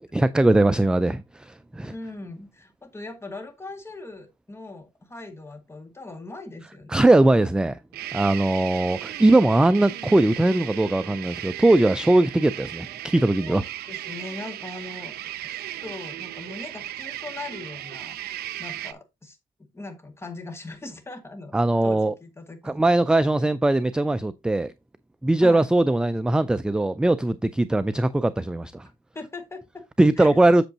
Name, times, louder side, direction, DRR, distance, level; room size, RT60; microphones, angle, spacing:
voice 1, 0.1-1.9 6.9-7.8 8.1-13.6 21.5-22.1 22.6-24.7 25.2-28.9 30.0-30.6, right 2 dB, 5° right, 0.3 m, -20 dB
voice 2, 1.9-7.1 13.5-15.1 15.5-19.4 19.7-21.6 21.8-22.8 25.4-25.7 28.8-29.9 30.2-30.4, left 2 dB, 15° left, 2.0 m, -40 dB
sound 1, 7.9-18.9, right 13 dB, 70° right, 0.7 m, -36 dB
8.0 x 7.0 x 2.8 m
cardioid pair, 110°, 17 cm